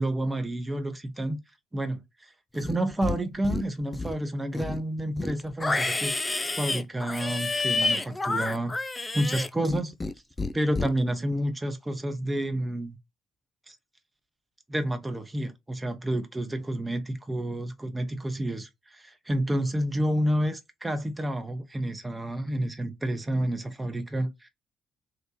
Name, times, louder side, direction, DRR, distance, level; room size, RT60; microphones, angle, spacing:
voice 1, 0.0-1.4 1.7-6.1 6.5-8.7 9.1-9.9 10.5-13.0 13.7-13.8 14.7-24.5, right 1 dB, 15° right, 0.9 m, -29 dB
Livestock farm animals working animals, 2.5-3.2 3.4-4.2 4.5-10.1 10.4-10.9, left 3 dB, 25° left, 0.4 m, -29 dB
3.8 x 2.5 x 3.0 m
figure-of-eight pair, 45°, 0 cm